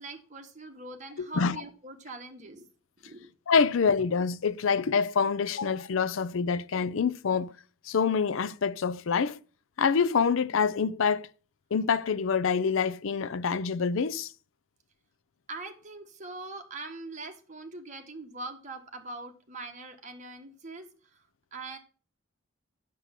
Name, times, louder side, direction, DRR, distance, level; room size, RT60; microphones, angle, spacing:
voice 1, 0.0-2.7 3.0-3.3 15.5-21.2 21.5-21.8, right 2 dB, 35° right, 1.4 m, -42 dB
voice 2, 1.2-1.6 3.5-7.5 7.9-9.4 9.8-11.3 11.7-14.3, left 5 dB, 70° left, 0.5 m, -26 dB
8.2 x 6.7 x 5.9 m
head